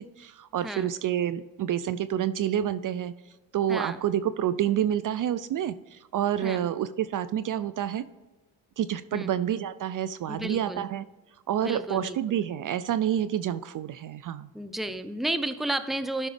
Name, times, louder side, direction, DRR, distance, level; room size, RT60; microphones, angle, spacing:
voice 1, 0.0-3.1 3.5-8.1 8.8-11.1 11.5-14.5, right 10 dB, 50° right, 15 dB, 0.4 m, -28 dB
voice 2, 3.7-4.0 6.4-6.7 9.1-9.3 10.3-10.8 11.6-12.4 14.5-16.3, right 1 dB, ahead, 11 dB, 0.6 m, -32 dB
12.5 x 6.0 x 3.4 m, 1.2 s
cardioid pair, 85°, 43 cm